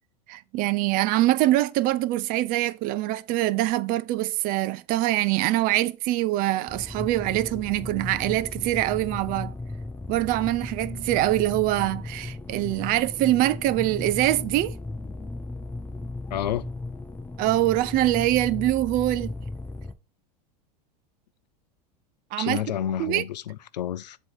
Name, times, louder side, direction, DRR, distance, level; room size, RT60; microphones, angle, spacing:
voice 1, 0.3-9.5 10.1-14.7 17.4-19.3 22.3-22.6 23.0-23.2, right 16 dB, 45° right, 0.5 m, -24 dB
sound 1, 6.7-19.9, left 2 dB, 10° left, 0.7 m, -36 dB
voice 2, 16.3-16.7 22.4-24.2, left 10 dB, 80° left, 0.5 m, -30 dB
7.6 x 3.0 x 5.6 m
hypercardioid pair, 95°, 21 cm